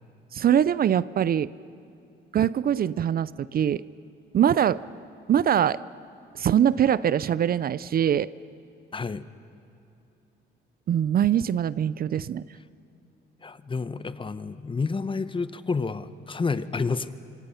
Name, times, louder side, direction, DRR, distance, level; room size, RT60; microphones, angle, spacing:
voice 1, 0.3-1.5 2.3-3.8 4.3-4.8 5.3-5.8 6.3-8.3 10.9-12.4, right 9 dB, 50° right, 18 dB, 0.5 m, -23 dB
voice 2, 8.9-9.2 13.4-17.1, left 4 dB, 25° left, 14 dB, 0.9 m, -29 dB
26.0 x 24.5 x 5.7 m, 2.8 s
cardioid pair, 90°, 20 cm